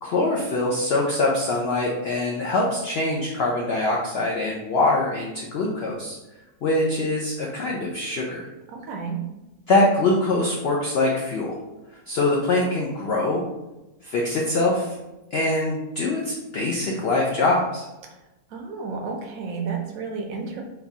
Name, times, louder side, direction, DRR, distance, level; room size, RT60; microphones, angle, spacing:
voice 1, 0.0-6.2 6.6-8.4 9.7-11.5 12.1-13.4 14.0-15.0 15.3-17.9, left 2 dB, 80° left, -2 dB, 0.5 m, -23 dB
voice 2, 8.7-9.2 18.5-20.6, right 5 dB, 70° right, 2 dB, 1.0 m, -31 dB
3.8 x 2.4 x 2.7 m, 1.0 s
omnidirectional pair, 1.7 m